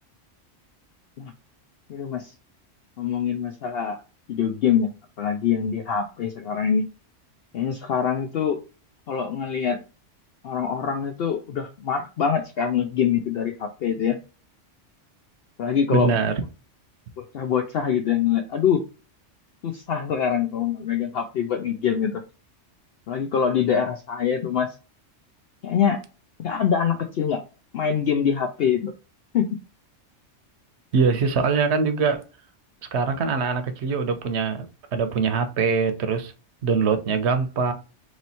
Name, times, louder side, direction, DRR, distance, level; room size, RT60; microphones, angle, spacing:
voice 1, 1.9-2.3 3.0-4.0 4.3-4.9 5.2-6.9 7.5-8.6 9.1-9.8 10.4-14.2 15.6-16.1 17.2-18.8 19.6-22.2 23.1-24.7 25.6-26.0 26.4-27.4 27.7-28.9 29.3-29.6, left 7 dB, 65° left, 0.7 m, -24 dB
voice 2, 15.9-16.4 30.9-32.2 32.9-34.7 34.9-36.3 36.6-37.7, right 5 dB, 70° right, 0.9 m, -23 dB
3.1 x 3.1 x 4.0 m
omnidirectional pair, 1.3 m